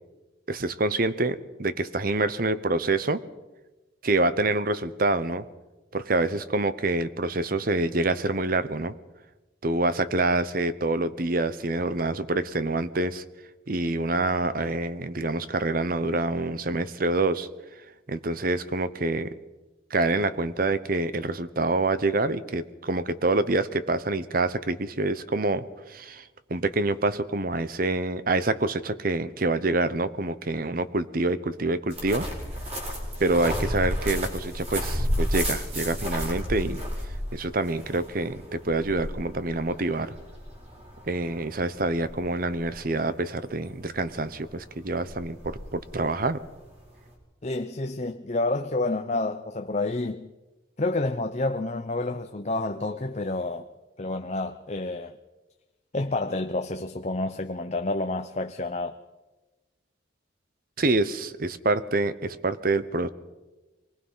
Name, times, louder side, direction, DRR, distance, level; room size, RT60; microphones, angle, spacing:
voice 1, 0.5-3.2 4.0-5.5 5.9-8.9 9.6-13.2 13.7-17.5 18.1-19.3 19.9-32.3 33.2-36.8 37.3-40.1 41.1-46.4 60.8-63.1, right 2 dB, 50° right, 0.9 m, -26 dB
sound 1, 31.9-47.1, equal, 35° right, 4.7 m, -32 dB
voice 2, 47.4-50.3 50.8-53.7 54.0-55.1 55.9-59.0, left 2 dB, 35° left, 0.7 m, -29 dB
24.5 x 19.5 x 5.7 m
head